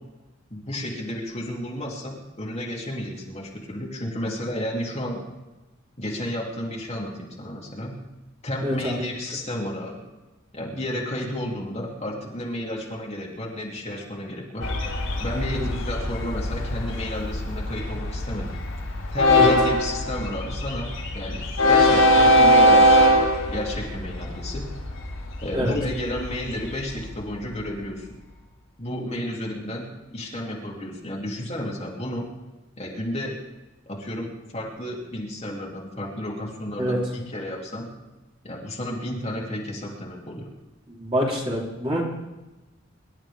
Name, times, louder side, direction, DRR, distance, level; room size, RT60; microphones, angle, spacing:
voice 1, 0.5-5.2 6.0-8.0 8.4-10.0 10.5-14.7 15.2-18.5 19.1-24.7 25.4-28.1 28.8-32.3 32.8-33.3 33.9-37.9 38.4-40.5, left 1 dB, 35° left, -3 dB, 3.0 m, -32 dB
voice 2, 8.6-9.1 15.5-15.7 19.3-19.5 25.5-25.8 36.8-37.0 40.9-42.0, equal, 30° right, -4 dB, 4.0 m, -26 dB
Train, 14.6-27.6, equal, 75° left, 6.1 m, -22 dB
25.5 x 12.5 x 3.6 m, 1.0 s
head